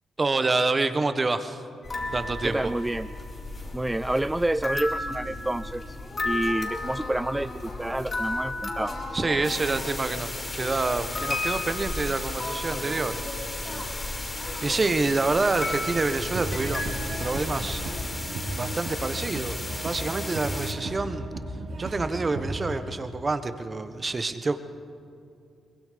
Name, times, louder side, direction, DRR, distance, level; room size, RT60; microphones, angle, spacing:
voice 1, 0.2-1.6 2.1-2.7 9.1-10.3 10.5-13.2 13.6-16.9 17.2-17.8 18.5-21.3 21.8-24.6, right 3 dB, 35° right, 10 dB, 1.3 m, -27 dB
sound 1, 1.8-18.0, left 2 dB, 45° left, 4.4 m, -34 dB
voice 2, 2.4-3.1 3.7-6.0 6.2-9.0, right 1 dB, 15° right, 14 dB, 0.4 m, -28 dB
sound 2, 9.4-20.7, left 2 dB, 30° left, 4.2 m, -36 dB
sound 3, 16.3-22.8, right 2 dB, 80° right, 6.1 m, -35 dB
23.0 x 21.5 x 5.3 m, 2.5 s
supercardioid pair, 55°, 0 cm